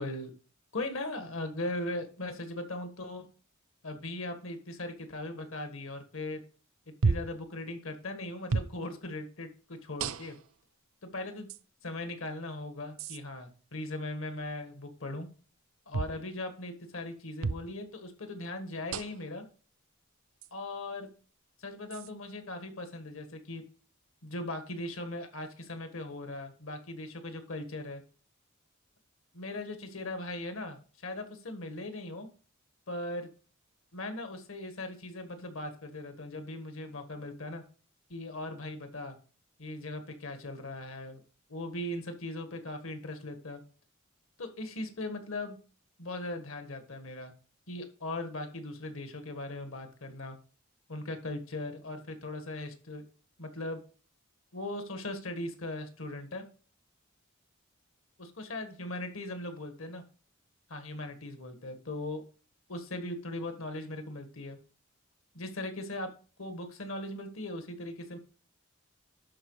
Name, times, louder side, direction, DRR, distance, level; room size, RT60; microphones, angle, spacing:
voice 1, 0.0-0.3 0.7-3.3 3.8-6.4 7.0-10.4 11.0-11.5 11.8-15.3 15.9-19.4 20.5-21.1 21.6-23.6 24.2-28.0 29.3-32.3 32.9-33.3 33.9-37.6 38.1-39.2 39.6-41.2 41.5-43.6 44.4-45.6 46.0-47.3 47.7-50.4 50.9-53.0 53.4-53.8 54.5-56.4 58.2-60.0 60.7-62.2 62.7-64.6 65.3-66.1 66.4-68.2, left 2 dB, 75° left, 7 dB, 1.6 m, -39 dB
sound 1, 7.0-7.4 8.5-8.8 10.0-10.5 11.5-11.6 13.0-13.2 15.9-16.2 17.4-17.7 18.9-19.3 20.4-20.5 21.9-22.1, right 4 dB, 80° right, 0.5 m, -31 dB
11.5 x 4.7 x 4.8 m, 0.38 s
head